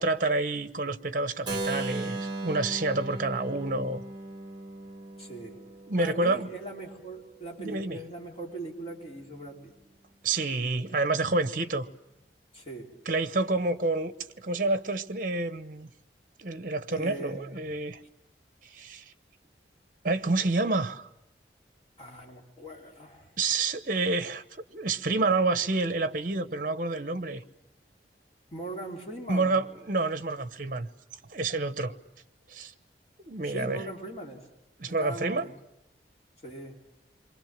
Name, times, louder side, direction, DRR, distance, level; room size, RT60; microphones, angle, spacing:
voice 1, 0.0-4.0 5.9-6.5 7.6-8.0 10.2-11.9 13.1-15.9 16.4-18.0 18.6-19.0 20.0-21.1 23.4-27.4 29.3-30.9 31.3-32.0 32.5-32.7 33.2-33.9 34.8-35.5, right 3 dB, 50° right, 12 dB, 1.0 m, -28 dB
Keyboard (musical), 1.5-7.3, right 2 dB, 25° right, 2.2 m, -37 dB
voice 2, 5.2-5.6 6.0-9.7 12.5-12.9 16.9-17.6 22.0-23.3 28.5-29.5 33.4-34.5 34.9-35.5 36.4-36.8, right 1 dB, 35° left, 0 dB, 3.3 m, -40 dB
28.5 x 23.5 x 7.4 m, 0.89 s
head